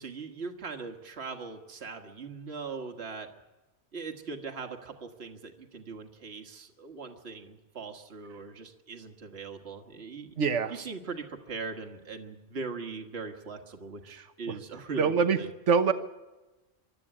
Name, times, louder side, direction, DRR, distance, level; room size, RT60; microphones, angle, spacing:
voice 1, 0.0-3.3 3.9-10.4 10.7-15.5, right 4 dB, 60° right, 3 dB, 1.8 m, -40 dB
voice 2, 10.4-10.7 14.5-14.6 15.0-15.4 15.7-15.9, right 5 dB, 85° right, 9 dB, 1.4 m, -24 dB
24.5 x 12.5 x 10.0 m, 1.1 s
omnidirectional pair, 1.2 m